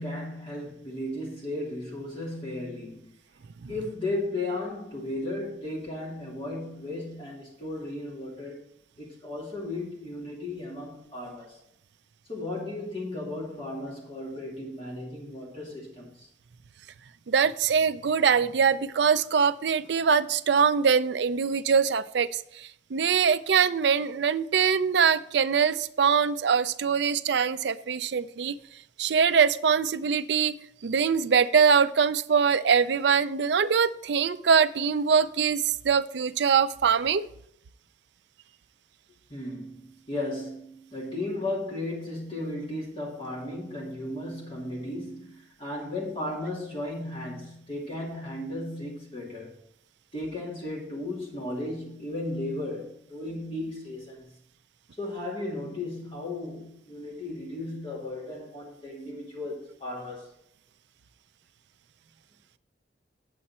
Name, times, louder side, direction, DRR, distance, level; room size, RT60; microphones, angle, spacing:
voice 1, 0.0-3.1 3.7-8.6 9.0-11.6 12.3-16.3 39.3-49.6 50.1-54.3 55.0-60.3, left 1 dB, 30° left, 2.5 m, -35 dB
voice 2, 17.3-28.5 29.0-30.5 30.8-37.3, right 6 dB, 65° right, 0.4 m, -23 dB
8.7 x 7.7 x 4.2 m
head